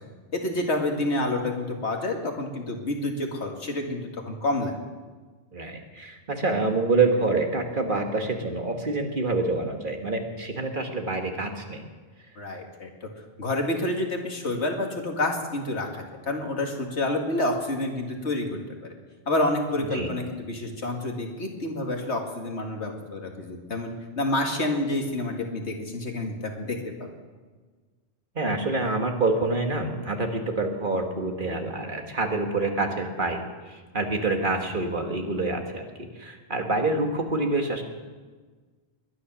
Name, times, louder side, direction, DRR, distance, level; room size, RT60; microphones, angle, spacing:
voice 1, 0.3-4.7 12.4-12.9 13.4-18.9 19.3-27.1, left 2 dB, 85° left, 2 dB, 2.4 m, -28 dB
voice 2, 5.5-11.9 19.7-20.1 28.4-33.4 33.7-35.8 36.2-37.8, right 3 dB, 50° right, 3 dB, 1.9 m, -27 dB
21.5 x 10.0 x 6.2 m, 1.4 s
omnidirectional pair, 1.1 m